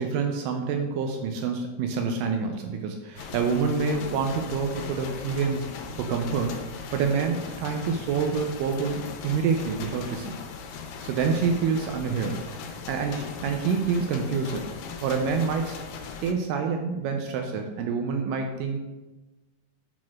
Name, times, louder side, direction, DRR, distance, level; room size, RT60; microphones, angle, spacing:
voice 1, 0.0-5.7 6.0-6.6 6.9-10.4 11.0-12.4 12.9-14.6 15.0-15.8 16.2-18.8, right 5 dB, 85° right, 4 dB, 2.2 m, -27 dB
sound 1, 3.2-16.3, left 6 dB, 75° left, 2.0 m, -38 dB
10.5 x 6.2 x 2.4 m, 1.1 s
omnidirectional pair, 3.9 m